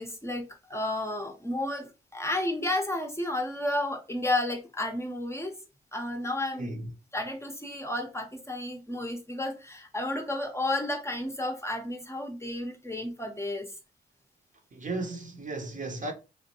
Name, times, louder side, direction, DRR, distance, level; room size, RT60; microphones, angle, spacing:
voice 1, 0.0-5.5 5.9-6.7 7.1-13.8, left 1 dB, 15° left, 0.7 m, -32 dB
voice 2, 6.5-6.9 14.7-16.1, right 2 dB, 40° right, 0.8 m, -35 dB
3.1 x 2.1 x 2.9 m
supercardioid pair, 40°, 20 cm